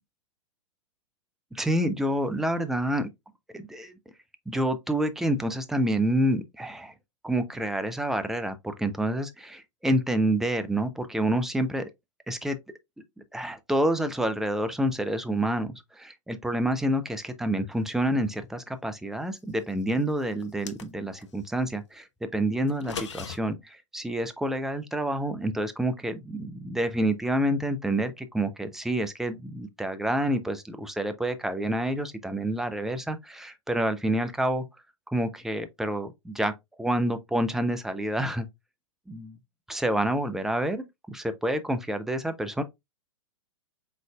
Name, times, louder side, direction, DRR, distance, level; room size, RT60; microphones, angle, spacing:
voice 1, 1.5-3.1 3.5-3.9 4.5-6.9 7.2-11.9 12.3-12.6 13.3-34.6 35.1-36.5 36.8-38.5 39.1-39.4 39.7-42.6, right 1 dB, ahead, 0.5 m, -28 dB
sound 1, 20.4-21.3 22.7-23.4, left 6 dB, 65° left, 0.8 m, -38 dB
5.3 x 3.8 x 2.3 m
figure-of-eight pair, 100°, 16 cm